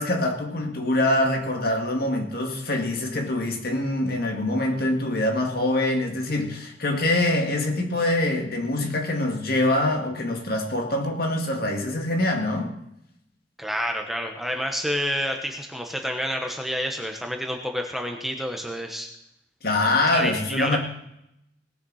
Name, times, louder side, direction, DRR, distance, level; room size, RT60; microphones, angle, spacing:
voice 1, 0.0-12.8 19.6-20.8, left 1 dB, 55° left, 2.2 m, -24 dB
voice 2, 13.6-19.1 20.1-20.8, equal, ahead, 1.0 m, -29 dB
18.5 x 6.9 x 6.4 m
head